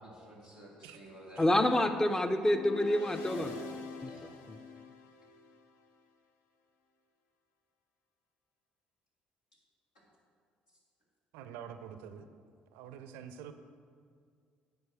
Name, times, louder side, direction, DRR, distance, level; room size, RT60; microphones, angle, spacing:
voice 1, 0.0-1.4 3.2-3.7 4.0-4.3, right 1 dB, 80° left, -6 dB, 2.0 m, -51 dB
voice 2, 1.4-3.6 4.0-4.1 4.5-4.6, left 1 dB, 15° left, 8 dB, 0.6 m, -28 dB
sound 1, 2.4-5.6, left 4 dB, 65° left, 0.5 m, -44 dB
voice 3, 11.3-12.3 12.7-13.5, right 8 dB, 65° right, 10 dB, 0.5 m, -46 dB
9.4 x 4.6 x 6.1 m, 2.1 s
figure-of-eight pair, 50°, 4 cm